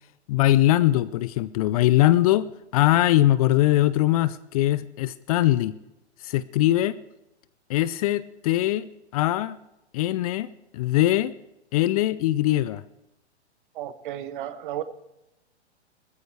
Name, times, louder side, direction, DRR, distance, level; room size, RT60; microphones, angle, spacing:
voice 1, 0.3-5.7 6.2-7.0 7.7-8.9 9.1-9.6 9.9-10.5 10.7-11.3 11.7-12.8, left 15 dB, 35° left, 17 dB, 0.5 m, -21 dB
voice 2, 13.7-14.8, right 11 dB, 45° right, 13 dB, 1.2 m, -33 dB
20.0 x 14.0 x 3.4 m, 0.91 s
figure-of-eight pair, 110°, 34 cm